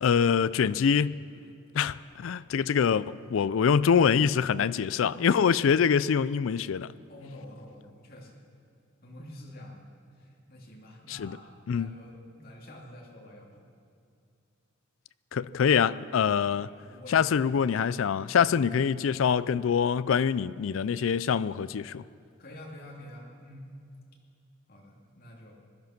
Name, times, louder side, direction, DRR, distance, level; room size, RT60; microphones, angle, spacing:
voice 1, 0.0-1.1 1.7-6.9 11.1-11.4 11.7-11.9 15.3-16.7 17.1-22.0, left 7 dB, 80° left, 0.4 m, -25 dB
voice 2, 7.1-8.4 9.0-9.9 10.2-13.6 16.6-18.0 22.4-23.8 24.7-25.6, left 1 dB, 45° left, 2.8 m, -48 dB
20.0 x 12.0 x 5.9 m
head